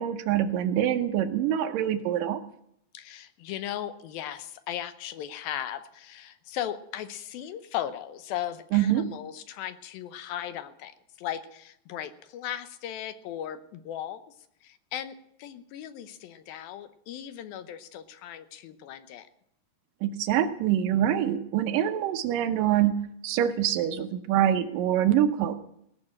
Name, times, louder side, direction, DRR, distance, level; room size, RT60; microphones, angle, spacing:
voice 1, 0.0-2.4 8.7-9.1 20.0-23.0 23.2-25.5, right 11 dB, 75° right, 7 dB, 2.5 m, -25 dB
voice 2, 2.9-10.9 11.2-14.2 14.6-19.3, left 11 dB, 90° left, 11 dB, 2.7 m, -37 dB
18.0 x 6.3 x 8.7 m, 0.74 s
omnidirectional pair, 4.1 m